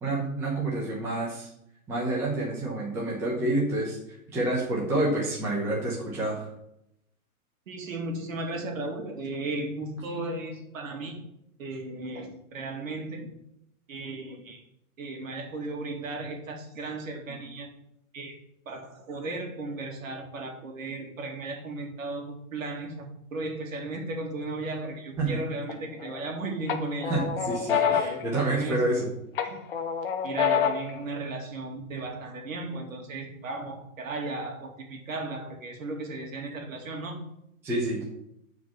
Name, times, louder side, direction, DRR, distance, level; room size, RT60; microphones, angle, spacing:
voice 1, 0.0-1.5 1.9-6.5 25.2-25.4 27.1-29.1 37.6-38.0, right 2 dB, 5° right, -5 dB, 1.0 m, -28 dB
voice 2, 7.7-11.2 11.6-13.3 13.9-14.6 15.0-17.7 18.1-18.4 18.7-27.2 27.7-28.8 29.4-29.6 30.2-37.2, right 2 dB, 65° right, 3 dB, 2.6 m, -35 dB
sound 1, 25.7-26.3 26.7-29.0 29.4-31.0, left 7 dB, 40° left, 0.9 m, -28 dB
9.1 x 4.6 x 7.2 m, 0.79 s
hypercardioid pair, 175°, 44 cm